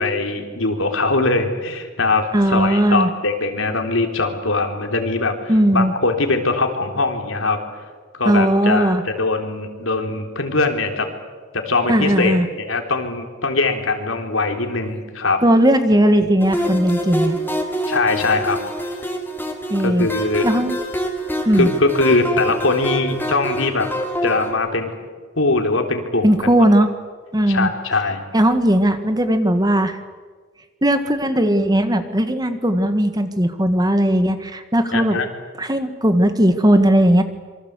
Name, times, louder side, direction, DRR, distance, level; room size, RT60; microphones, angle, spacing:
voice 1, 0.0-7.6 8.1-11.1 11.5-15.4 17.9-18.6 19.8-20.5 21.6-23.9 24.2-24.9 25.4-26.5 27.5-28.2 34.9-35.3, left 3 dB, 75° left, 4 dB, 3.6 m, -21 dB
voice 2, 2.3-3.1 5.5-5.9 8.2-9.0 11.9-12.5 15.4-17.4 19.7-20.1 20.4-20.8 21.4-21.7 26.2-26.9 27.3-27.7 28.3-30.0 30.8-35.2 35.6-37.2, right 1 dB, 20° right, 9 dB, 1.6 m, -17 dB
sound 1, 16.4-24.5, equal, 10° left, 3.1 m, -26 dB
26.5 x 24.5 x 8.2 m, 1.5 s
head